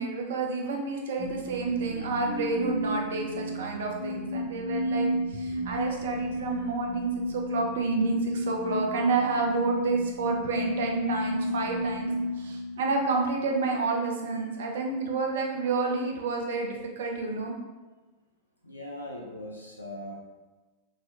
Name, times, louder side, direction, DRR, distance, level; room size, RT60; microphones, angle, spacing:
voice 1, 0.0-12.1 12.4-17.5, right 3 dB, 60° right, 1 dB, 0.5 m, -29 dB
sound 1, 1.2-13.3, equal, 70° left, 1.1 m, -32 dB
voice 2, 18.6-20.1, left 1 dB, 85° left, -2 dB, 0.4 m, -40 dB
3.0 x 2.6 x 2.6 m, 1.2 s
figure-of-eight pair, 90°, 0 cm